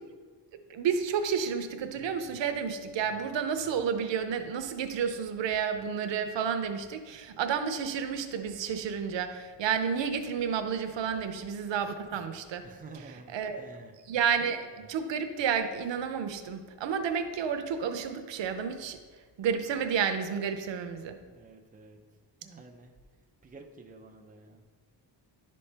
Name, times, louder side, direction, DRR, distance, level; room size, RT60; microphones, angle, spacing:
voice 1, 0.7-12.7 12.9-13.7 14.1-19.0 19.4-21.2, right 7 dB, 85° right, 8 dB, 0.7 m, -31 dB
voice 2, 12.6-13.9 21.2-22.0 22.4-22.9 23.4-24.6, right 3 dB, 20° right, 1 dB, 0.6 m, -50 dB
11.0 x 4.2 x 3.3 m, 1.5 s
wide cardioid pair, 140°, 43 cm